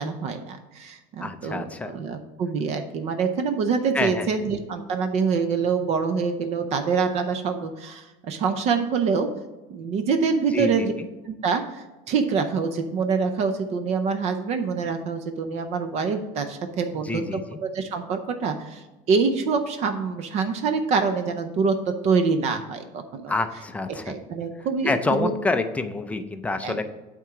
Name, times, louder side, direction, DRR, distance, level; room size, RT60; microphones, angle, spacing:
voice 1, 0.0-9.3 9.7-10.9 11.3-21.8 22.0-23.3 24.1-25.3 26.6-26.8, right 5 dB, 40° right, 7 dB, 0.6 m, -25 dB
voice 2, 1.2-1.9 3.9-4.3 10.5-10.9 17.0-17.6 23.3-24.1 24.8-26.8, left 3 dB, 10° left, 8 dB, 0.4 m, -27 dB
9.0 x 3.7 x 5.8 m, 1.1 s
cardioid pair, 165°, 17 cm